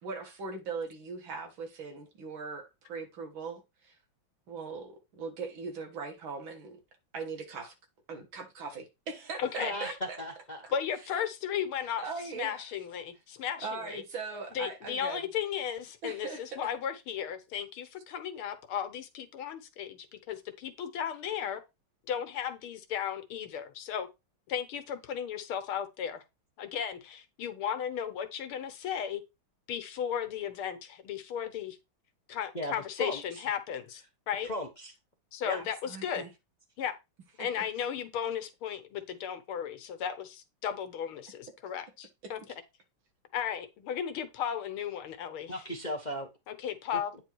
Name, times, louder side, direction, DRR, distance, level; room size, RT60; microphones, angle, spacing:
voice 1, 0.0-4.0 4.5-6.8 7.1-7.7 8.1-10.2 10.6-10.7 11.1-11.2 12.0-12.6 13.6-15.3 16.0-16.6 35.6-36.3 37.4-37.5 42.2-42.3, right 4 dB, 70° right, 2.4 m, -40 dB
voice 2, 9.4-10.0 10.7-12.0 12.3-14.0 14.5-21.6 22.1-24.1 24.5-26.2 26.6-29.2 29.7-31.8 32.3-34.5 35.3-36.3 36.8-36.9 37.4-42.4 43.3-45.6 46.5-47.1, left 8 dB, 80° left, 1.9 m, -35 dB
voice 3, 10.2-10.7 32.5-33.4 34.4-34.9 35.4-35.6 45.5-46.3 46.9-47.0, equal, 30° left, 0.8 m, -36 dB
9.2 x 3.8 x 4.6 m
omnidirectional pair, 2.3 m